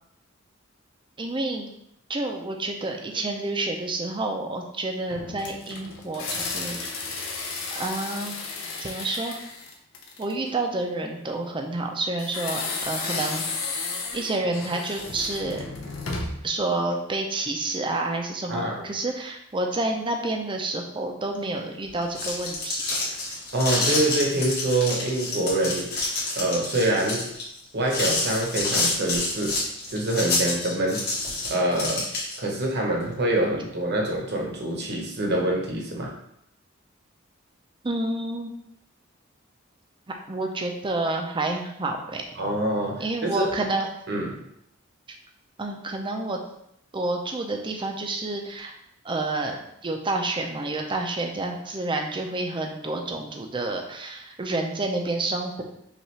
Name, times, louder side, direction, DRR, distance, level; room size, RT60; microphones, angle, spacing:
voice 1, 1.2-1.7 2.1-6.8 7.7-8.4 8.8-9.4 10.2-13.4 14.1-15.6 16.4-23.0 37.8-38.5 40.3-42.2 43.0-43.9 45.6-46.4 46.9-48.7 49.0-55.6, right 2 dB, 25° right, 2 dB, 0.5 m, -29 dB
sound 1, 5.1-10.5 12.2-16.5, left 3 dB, 80° left, 0.7 m, -33 dB
voice 2, 18.5-18.9 23.5-25.9 26.3-27.3 27.7-29.6 29.9-31.1 31.5-32.1 32.4-36.1 42.4-43.5 44.1-44.4, right 1 dB, 55° right, 0 dB, 1.0 m, -25 dB
sound 2, 21.9-32.5, left 2 dB, 50° left, 1.5 m, -28 dB
5.4 x 2.5 x 3.2 m, 0.76 s
head